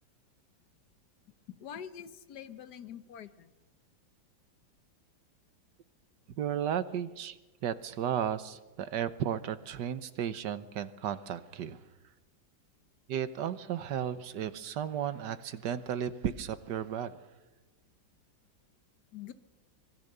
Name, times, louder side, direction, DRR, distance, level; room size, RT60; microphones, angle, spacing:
voice 1, 1.6-3.5 19.1-19.3, left 9 dB, 60° left, 12 dB, 1.5 m, -45 dB
voice 2, 6.4-7.4 7.6-11.8 13.1-17.2, right 9 dB, 65° right, 13 dB, 1.6 m, -34 dB
25.5 x 20.5 x 6.8 m, 1.1 s
omnidirectional pair, 2.1 m